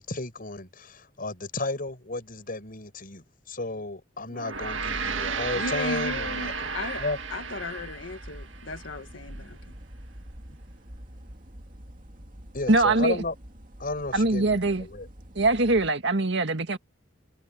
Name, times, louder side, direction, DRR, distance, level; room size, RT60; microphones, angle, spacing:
voice 1, 0.0-7.2 12.5-13.3 13.8-15.1, left 2 dB, 50° left, 6.8 m, -33 dB
Gong, 4.3-8.9, right 5 dB, 90° right, 1.8 m, -33 dB
sound 1, 4.5-15.9, equal, 45° right, 2.5 m, -45 dB
voice 2, 5.5-7.0 7.3-9.6, left 2 dB, 80° left, 1.7 m, -35 dB
voice 3, 12.7-13.2 14.1-14.8 15.4-16.8, right 2 dB, 65° right, 2.0 m, -22 dB
head